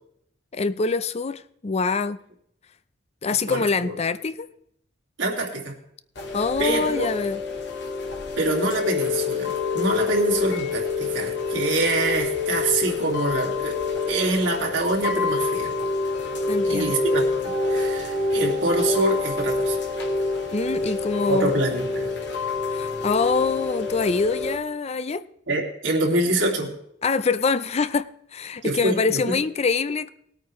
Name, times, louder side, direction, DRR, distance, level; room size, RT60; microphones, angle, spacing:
voice 1, 0.5-2.2 3.2-4.5 6.3-7.4 16.5-16.9 20.5-21.5 22.7-25.2 27.0-30.1, left 4 dB, 35° left, 0.5 m, -25 dB
voice 2, 3.3-3.9 5.2-5.7 6.6-7.1 8.4-13.8 14.1-15.7 16.6-19.8 21.3-22.1 25.5-26.7 28.6-29.4, right 2 dB, 85° right, 2.5 m, -25 dB
Chime / Rain, 6.2-24.6, left 3 dB, 70° left, 1.8 m, -27 dB
19.5 x 8.8 x 3.1 m
head